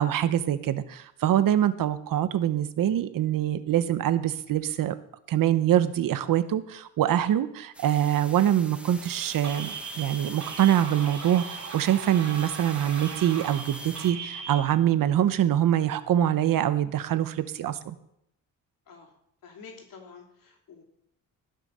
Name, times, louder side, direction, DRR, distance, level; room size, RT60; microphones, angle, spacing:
voice 1, 0.0-4.9 5.3-18.0, right 11 dB, 90° right, 12 dB, 0.9 m, -24 dB
sound 1, 7.7-14.1, right 1 dB, 5° right, 1.1 m, -45 dB
sound 2, 9.4-14.6, right 5 dB, 55° right, 2.3 m, -38 dB
voice 2, 19.4-20.8, left 5 dB, 85° left, 1 dB, 3.4 m, -48 dB
18.5 x 6.6 x 5.5 m, 0.75 s
wide cardioid pair, 150°, 33 cm